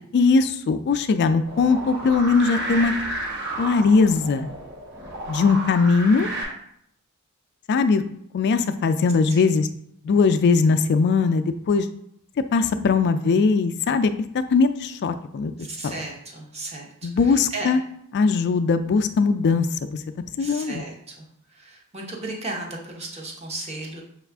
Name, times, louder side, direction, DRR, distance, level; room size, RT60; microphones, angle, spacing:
voice 1, 0.1-2.9 3.6-4.5 5.3-6.3 7.7-8.0 8.3-9.7 10.0-11.9 12.5-14.1 14.5-15.5 15.8-15.9 17.0-17.8 18.1-20.0 20.4-20.8, left 4 dB, 50° left, 10 dB, 0.3 m, -20 dB
sound 1, 1.4-6.4, right 1 dB, 50° right, 1.2 m, -32 dB
voice 2, 15.6-17.7 20.4-24.0, right 2 dB, 30° right, -1 dB, 0.9 m, -35 dB
6.2 x 2.4 x 3.4 m, 0.71 s
head